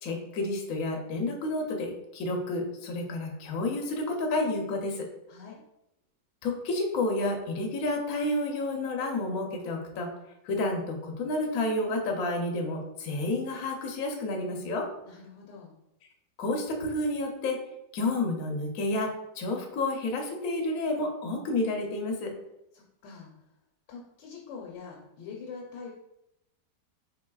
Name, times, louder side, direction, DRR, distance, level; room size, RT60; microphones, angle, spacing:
voice 1, 0.0-5.1 6.4-10.1 10.4-14.9 16.4-17.6 17.9-22.3, left 2 dB, 65° left, 1 dB, 0.9 m, -30 dB
voice 2, 5.3-5.6 15.0-15.7 22.7-23.3 23.9-25.9, left 5 dB, 80° left, -1 dB, 1.2 m, -44 dB
3.9 x 3.4 x 2.2 m, 0.86 s
omnidirectional pair, 1.9 m